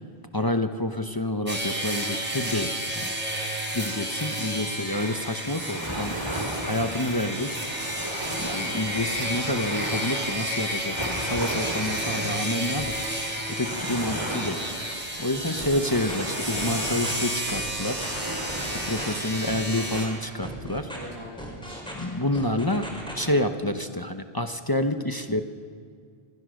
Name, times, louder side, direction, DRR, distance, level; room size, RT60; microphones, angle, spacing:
voice 1, 0.3-3.2 3.7-6.2 6.6-7.6 8.4-13.0 13.5-14.6 15.2-18.0 18.7-20.9 21.9-22.9 23.1-25.4, left 1 dB, 25° left, 7 dB, 0.8 m, -28 dB
sound 1, 1.5-20.1, right 1 dB, 45° right, 3.2 m, -31 dB
sound 2, 4.9-19.4, right 1 dB, 25° right, 2.7 m, -36 dB
voice 2, 12.0-12.3 15.3-16.0 20.9-22.3 22.7-22.8, equal, 60° right, -3 dB, 7.1 m, -43 dB
sound 3, 15.6-16.3 16.6-17.1 17.5-18.2 18.5-19.0 19.5-20.1 20.4-21.0 21.4-22.1 22.3-23.3, equal, 5° left, 4.3 m, -38 dB
26.5 x 16.0 x 6.4 m, 2.2 s
omnidirectional pair, 1.1 m